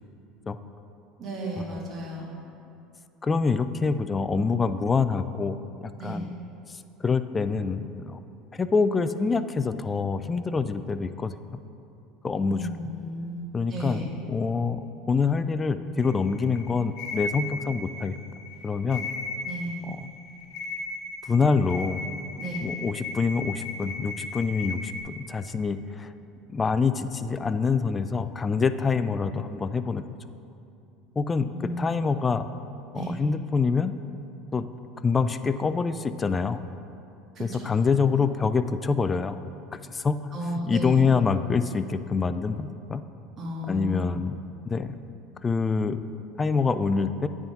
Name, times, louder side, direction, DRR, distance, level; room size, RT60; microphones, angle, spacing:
voice 1, 1.2-2.3 6.0-6.2 12.5-14.1 19.4-19.8 22.4-22.6 31.5-31.9 32.9-33.2 37.4-37.7 40.3-41.0 43.4-44.1, right 1 dB, 45° right, -3 dB, 1.7 m, -34 dB
voice 2, 3.2-5.6 5.8-6.3 6.7-8.2 8.5-11.3 12.2-12.7 13.5-14.8 15.1-18.2 18.6-19.1 19.8-20.1 21.3-22.0 22.6-26.1 26.5-30.0 31.2-31.5 31.8-32.5 32.9-33.9 34.5-34.7 35.0-36.6 37.4-39.4 39.7-40.2 40.5-43.0 43.7-44.3 44.7-45.0 45.4-46.0 46.4-47.3, left 5 dB, 25° left, 11 dB, 0.3 m, -26 dB
sound 1, 16.0-25.0, left 3 dB, 60° left, 0.9 m, -36 dB
8.9 x 3.6 x 5.3 m, 2.7 s
hypercardioid pair, 90°, 0 cm